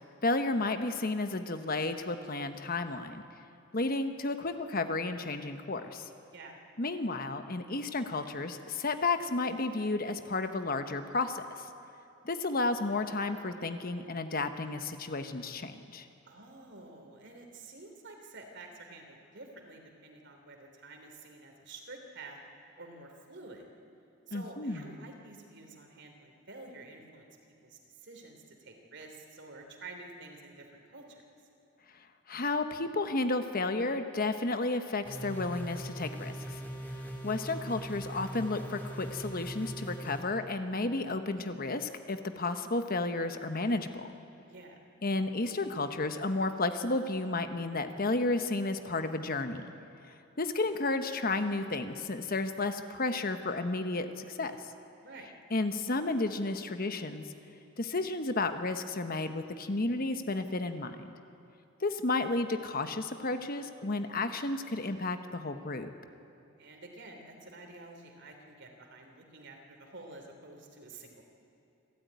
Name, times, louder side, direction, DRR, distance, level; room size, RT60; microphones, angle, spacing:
voice 1, 0.2-3.2 3.7-6.1 6.8-11.5 12.2-16.1 24.3-25.0 32.3-36.6 37.2-44.1 45.0-49.6 50.4-54.6 55.5-57.3 57.8-61.0 61.8-65.9, left 2 dB, 45° left, 8 dB, 1.1 m, -32 dB
voice 2, 16.2-22.4 22.8-23.7 24.3-27.3 27.6-31.2 44.5-44.8 55.0-55.3 66.6-71.2, right 2 dB, 55° right, 3 dB, 3.1 m, -49 dB
sound 1, 35.0-40.2, right 1 dB, 10° left, 3.1 m, -40 dB
28.0 x 13.5 x 9.5 m, 2.7 s
head